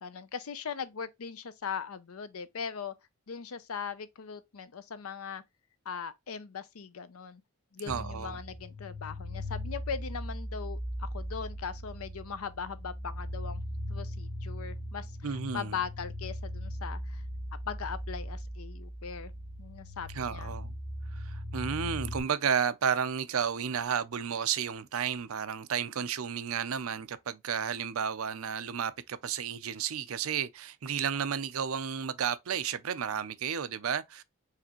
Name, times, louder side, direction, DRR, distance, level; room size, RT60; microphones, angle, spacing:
voice 1, 0.0-2.9 3.3-5.4 5.9-7.4 7.7-13.6 13.9-17.2 17.7-19.3 19.6-20.5, left 6 dB, 80° left, 0.6 m, -39 dB
sound 1, 7.9-22.2, equal, 55° left, 1.4 m, -39 dB
voice 2, 7.9-8.4 15.2-15.8 20.1-20.7 21.2-34.2, right 7 dB, 75° right, 0.5 m, -32 dB
4.9 x 3.4 x 3.0 m
head